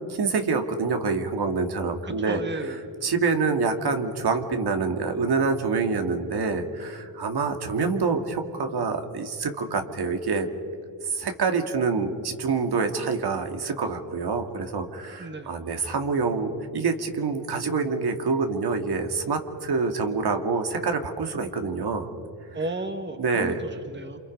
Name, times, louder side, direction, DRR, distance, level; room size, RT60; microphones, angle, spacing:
voice 1, 0.1-2.4 2.7-2.8 3.0-10.5 11.0-22.1 23.2-23.6, right 4 dB, 65° right, 5 dB, 2.1 m, -26 dB
voice 2, 2.0-2.8 15.2-15.5 22.5-24.2, right 2 dB, 25° right, 7 dB, 1.9 m, -33 dB
28.0 x 26.0 x 5.3 m, 2.3 s
cardioid pair, 70°, 42 cm